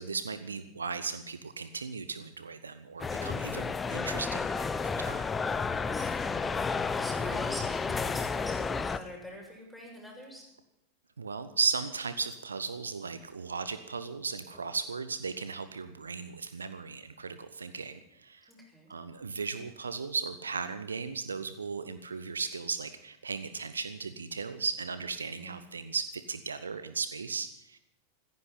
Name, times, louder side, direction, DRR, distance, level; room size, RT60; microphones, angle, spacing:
voice 1, 0.0-5.2 11.2-18.5 18.9-27.8, right 5 dB, 75° right, 12 dB, 1.0 m, -36 dB
sound 1, 3.0-9.0, left 4 dB, 15° left, 0.8 m, -31 dB
voice 2, 5.8-10.4 14.5-14.6 18.5-18.9 25.3-25.6, equal, ahead, -2 dB, 7.2 m, -45 dB
15.5 x 15.0 x 5.9 m, 0.85 s
figure-of-eight pair, 90°, 0 cm